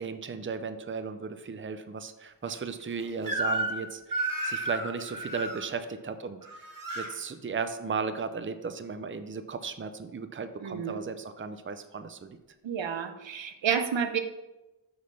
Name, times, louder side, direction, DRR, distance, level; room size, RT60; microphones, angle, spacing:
voice 1, 0.0-6.7 7.0-12.4, right 5 dB, 25° right, 9 dB, 0.6 m, -36 dB
Crying sobbing / Screech, 3.3-3.8 4.1-5.6 6.4-7.1, right 2 dB, 45° right, 1.6 m, -32 dB
voice 2, 10.6-11.0 12.6-14.2, right 7 dB, 80° right, 8 dB, 0.7 m, -30 dB
6.4 x 4.1 x 5.5 m, 1.0 s
cardioid pair, 40°, 45 cm